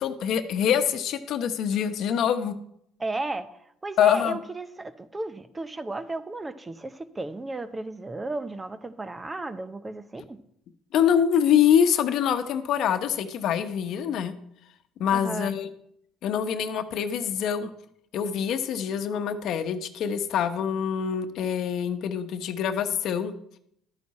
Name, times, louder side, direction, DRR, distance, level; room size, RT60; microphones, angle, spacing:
voice 1, 0.0-2.5 4.0-4.4 10.9-14.3 15.0-15.7 16.2-17.7 18.1-23.3, left 8 dB, 65° left, 9 dB, 1.0 m, -25 dB
voice 2, 3.0-3.5 3.8-10.4 15.1-15.5, right 2 dB, 20° right, 13 dB, 0.7 m, -34 dB
11.5 x 9.3 x 4.3 m, 0.71 s
supercardioid pair, 90°, 0 cm